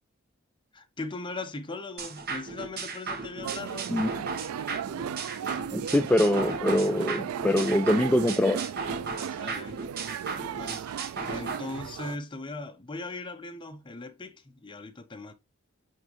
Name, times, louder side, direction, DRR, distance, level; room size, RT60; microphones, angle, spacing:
voice 1, 0.7-3.9 9.2-9.8 10.5-15.3, left 3 dB, 20° left, 0.8 m, -39 dB
sound 1, 2.0-11.6, right 4 dB, 45° right, 1.3 m, -36 dB
sound 2, 3.4-12.2, right 8 dB, 90° right, 0.3 m, -36 dB
voice 2, 5.7-8.6, left 1 dB, 5° left, 0.4 m, -24 dB
9.0 x 3.6 x 3.1 m
head